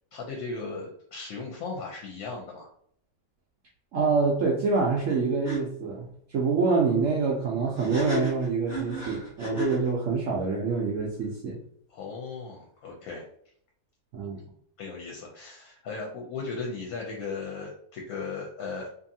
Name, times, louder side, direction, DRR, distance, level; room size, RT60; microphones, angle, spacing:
voice 1, 0.1-2.7 11.9-13.3 14.8-18.9, left 4 dB, 70° left, 0 dB, 1.0 m, -37 dB
voice 2, 3.9-11.6 14.1-14.4, right 4 dB, 75° right, -2 dB, 0.7 m, -26 dB
sound 1, 5.1-5.2 5.4-5.6 7.8-9.9, equal, 10° right, 0.8 m, -33 dB
2.6 x 2.6 x 2.6 m, 0.65 s
omnidirectional pair, 1.8 m